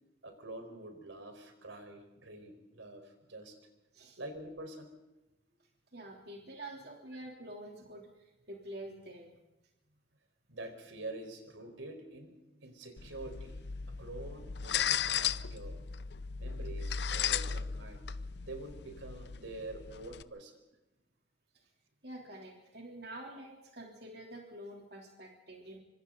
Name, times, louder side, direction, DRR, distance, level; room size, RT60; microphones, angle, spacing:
voice 1, 0.2-3.6 4.2-4.9 10.5-13.6 14.0-15.8 16.4-18.0 18.4-20.6, right 2 dB, 90° right, 6 dB, 4.8 m, -46 dB
voice 2, 5.9-9.4 22.0-25.8, right 1 dB, 55° right, 0 dB, 3.3 m, -47 dB
sound 1, 13.0-20.2, left 8 dB, 60° left, 0.7 m, -36 dB
25.5 x 25.5 x 4.0 m, 1.0 s
head